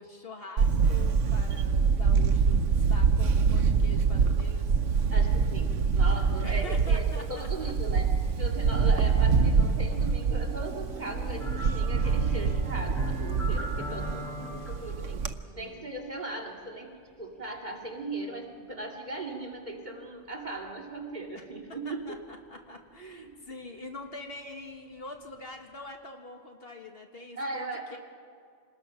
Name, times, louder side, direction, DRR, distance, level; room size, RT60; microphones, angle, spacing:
voice 1, 0.0-4.8 6.4-7.7 13.9-14.6 15.4-15.9 21.3-21.5 21.9-28.0, left 2 dB, 50° left, 3 dB, 1.9 m, -45 dB
Camera, 0.6-15.3, right 5 dB, 80° right, 1.2 m, -25 dB
voice 2, 5.1-8.1 8.4-15.2 15.5-16.9 17.2-22.2 23.0-23.5 27.4-28.0, right 2 dB, 35° right, -2 dB, 2.7 m, -38 dB
sound 1, 11.4-14.7 17.5-17.6, left 1 dB, ahead, 4.9 m, -39 dB
26.5 x 20.0 x 5.9 m, 2.3 s
omnidirectional pair, 1.3 m